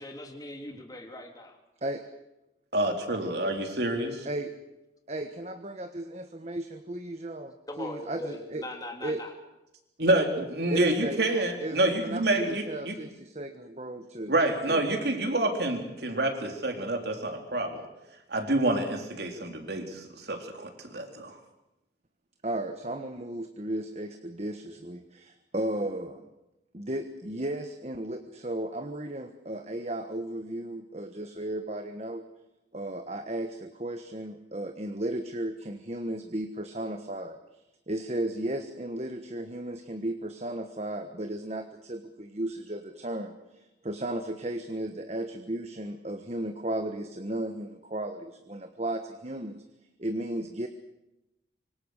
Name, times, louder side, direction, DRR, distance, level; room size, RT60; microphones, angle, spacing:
voice 1, 0.0-1.6 7.7-9.3, left 1 dB, 20° left, 3 dB, 3.3 m, -40 dB
voice 2, 2.7-4.3 10.0-13.0 14.3-17.8 18.3-21.4, right 1 dB, 60° right, 4 dB, 3.8 m, -28 dB
voice 3, 5.1-8.6 9.0-9.2 10.7-11.3 11.6-14.3 14.7-14.8 22.4-26.3 26.7-32.3 32.7-37.4 37.9-49.6 50.0-50.7, right 1 dB, 35° right, 7 dB, 1.3 m, -35 dB
25.5 x 24.5 x 6.6 m, 0.93 s
head